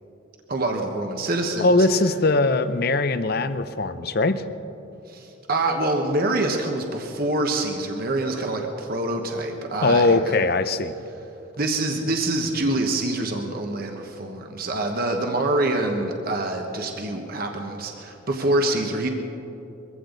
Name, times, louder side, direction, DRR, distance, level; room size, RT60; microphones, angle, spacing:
voice 1, 0.5-1.7 5.1-10.4 11.6-19.1, right 2 dB, 50° right, 3 dB, 1.2 m, -25 dB
voice 2, 1.6-4.4 9.8-10.9, left 3 dB, 50° left, 12 dB, 0.6 m, -20 dB
22.5 x 15.5 x 3.9 m, 2.9 s
head